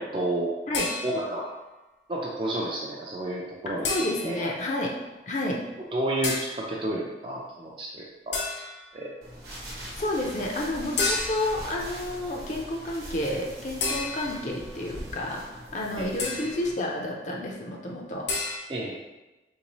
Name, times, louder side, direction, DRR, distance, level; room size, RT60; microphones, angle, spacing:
voice 1, 0.0-0.5 1.0-1.4 2.1-3.9 4.2-4.5 5.9-8.4 8.9-9.1 16.0-16.1 18.7-19.0, right 1 dB, 30° right, -3 dB, 0.4 m, -30 dB
sound 1, 0.7-1.4 3.8-4.5 6.2-6.6 8.3-8.9 11.0-11.6 13.8-14.5 16.2-16.7 18.3-18.6, left 3 dB, 90° left, 0.7 m, -31 dB
voice 2, 3.7-4.9 5.3-5.6 9.9-18.3, left 1 dB, 45° left, -1 dB, 0.5 m, -30 dB
sound 2, 9.2-16.7, equal, 65° right, 0.9 m, -42 dB
3.8 x 2.7 x 2.9 m, 1.1 s
head